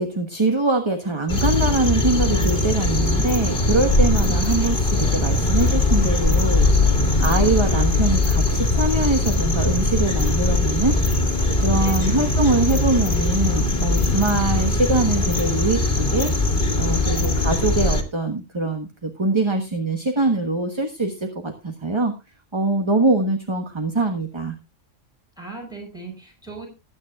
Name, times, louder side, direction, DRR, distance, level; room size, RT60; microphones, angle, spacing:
voice 1, 0.0-6.7 7.2-11.0 11.6-16.3 16.8-22.1 22.5-24.5, right 2 dB, 20° right, 5 dB, 1.4 m, -23 dB
sound 1, 1.3-18.0, left 2 dB, 40° left, 2.4 m, -20 dB
voice 2, 4.1-4.7 11.8-12.3 25.4-26.7, right 3 dB, 5° right, 1 dB, 5.4 m, -38 dB
sound 2, 4.5-13.2, right 1 dB, 55° right, 8.0 m, -46 dB
20.5 x 9.3 x 2.4 m, 0.28 s
omnidirectional pair, 1.3 m